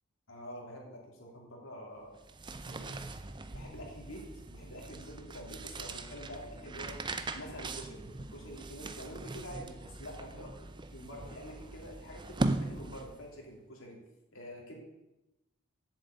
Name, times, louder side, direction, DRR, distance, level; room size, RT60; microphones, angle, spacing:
voice 1, 0.3-2.2 2.7-3.0 3.2-4.2 4.5-10.6 10.9-14.0 14.3-14.8, equal, 70° left, -1 dB, 3.1 m, -47 dB
sound 1, 2.1-13.3, right 2 dB, 20° right, 0.5 m, -40 dB
7.5 x 7.3 x 8.2 m, 0.95 s
head